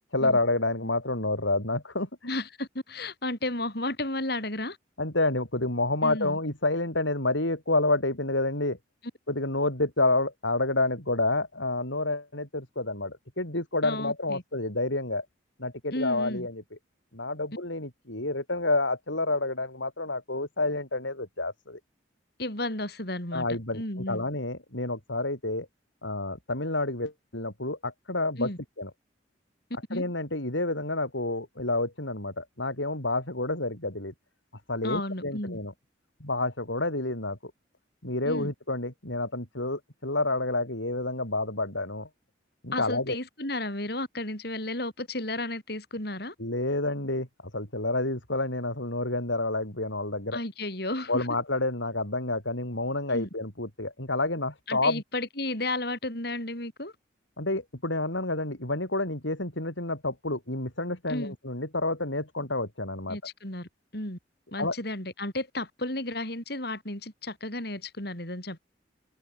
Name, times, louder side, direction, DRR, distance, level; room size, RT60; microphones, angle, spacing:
voice 1, 0.1-2.3 5.0-8.8 9.3-15.3 15.6-16.6 17.1-21.8 23.3-23.8 24.1-25.7 26.0-28.5 28.8-28.9 29.9-34.1 34.7-35.7 36.2-37.4 38.0-42.1 42.6-43.2 46.4-47.3 47.5-50.4 51.1-55.0 57.4-63.2 64.6-64.7, left 2 dB, 85° left, 7.5 m, -29 dB
voice 2, 2.3-4.8 6.0-6.4 13.8-14.4 15.9-16.5 22.4-24.3 28.4-28.6 29.9-30.0 34.8-35.6 38.3-38.5 42.7-46.4 50.3-51.3 53.1-53.3 54.7-56.9 61.1-61.3 63.1-64.2 64.5-68.6, left 2 dB, 55° left, 6.9 m, -33 dB
open air
head